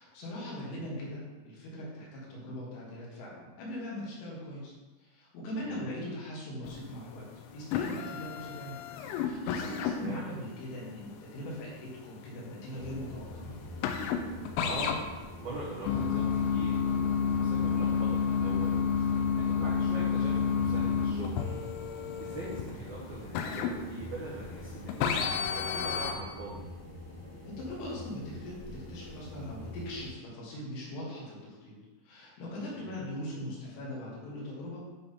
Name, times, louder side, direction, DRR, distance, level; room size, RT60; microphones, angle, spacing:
voice 1, 0.0-4.7 5.0-7.3 7.5-8.8 9.2-13.5 27.5-31.8 32.0-34.8, left 1 dB, 75° left, -5 dB, 4.2 m, -40 dB
sound 1, 6.6-7.1 7.4-24.5 24.9-26.1, left 7 dB, 90° left, 3.4 m, -30 dB
voice 2, 9.9-10.2 14.6-15.0 15.4-21.6 22.2-26.6 32.7-33.0, right 2 dB, 85° right, -6 dB, 2.1 m, -42 dB
sound 2, 12.7-30.1, left 1 dB, 55° left, 1.3 m, -45 dB
10.5 x 3.5 x 4.1 m, 1.2 s
omnidirectional pair, 6.0 m